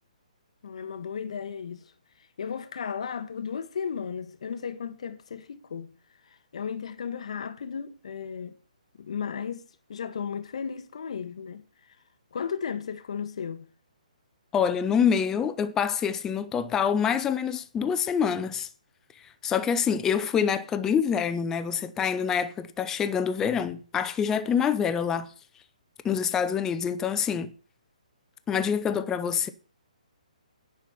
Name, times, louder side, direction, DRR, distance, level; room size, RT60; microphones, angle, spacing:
voice 1, 0.6-1.9 2.2-5.9 6.2-8.5 9.0-12.0 12.3-13.7, left 7 dB, 50° left, 1.0 m, -35 dB
voice 2, 14.5-18.7 19.4-25.3 26.0-27.5 28.5-29.5, left 7 dB, 10° left, 0.7 m, -26 dB
10.5 x 5.7 x 8.2 m
figure-of-eight pair, 130°, 4 cm